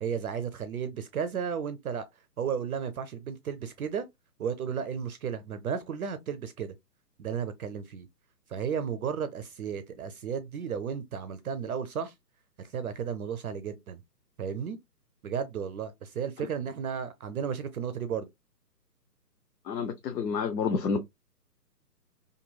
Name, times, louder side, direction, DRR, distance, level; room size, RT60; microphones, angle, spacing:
voice 1, 0.0-2.1 2.4-4.1 4.4-6.7 7.2-8.1 8.5-12.1 12.6-14.0 14.4-14.8 15.2-18.3, right 7 dB, 60° right, 0.5 m, -33 dB
voice 2, 19.6-21.0, left 5 dB, 75° left, 0.7 m, -29 dB
2.9 x 2.6 x 2.2 m
hypercardioid pair, 145°, 50 cm